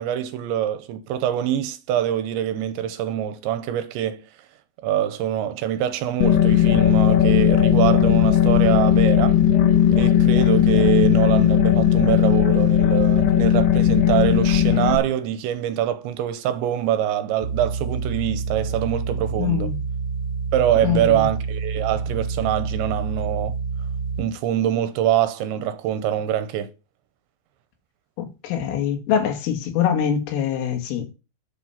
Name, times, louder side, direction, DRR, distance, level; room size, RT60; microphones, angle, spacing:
voice 1, 0.0-4.2 4.8-9.4 9.9-19.7 20.5-23.5 24.2-26.7, right 11 dB, 80° right, 2.9 m, -24 dB
sound 1, 6.2-15.0, left 10 dB, 60° left, 2.7 m, -17 dB
sound 2, 17.4-24.2, right 4 dB, 35° left, 4.7 m, -28 dB
voice 2, 19.4-19.7 20.8-21.3 28.2-31.1, left 8 dB, 80° left, 4.5 m, -24 dB
12.0 x 7.2 x 5.7 m
omnidirectional pair, 5.7 m